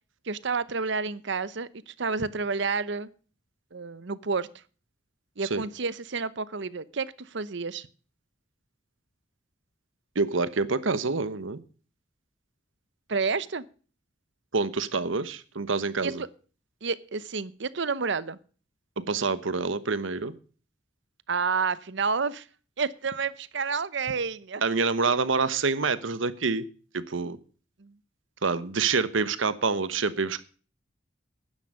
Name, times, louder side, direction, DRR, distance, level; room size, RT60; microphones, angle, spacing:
voice 1, 0.3-3.1 3.7-4.5 5.4-7.9 13.1-13.6 16.0-16.3 16.8-18.4 21.3-22.4 22.8-24.6 27.8-27.9, right 4 dB, 65° right, 17 dB, 0.8 m, -30 dB
voice 2, 10.1-11.6 14.5-16.2 19.0-20.3 24.6-26.7 26.9-27.4 28.4-30.4, right 4 dB, 80° right, 15 dB, 1.1 m, -27 dB
11.5 x 9.9 x 6.5 m, 0.40 s
head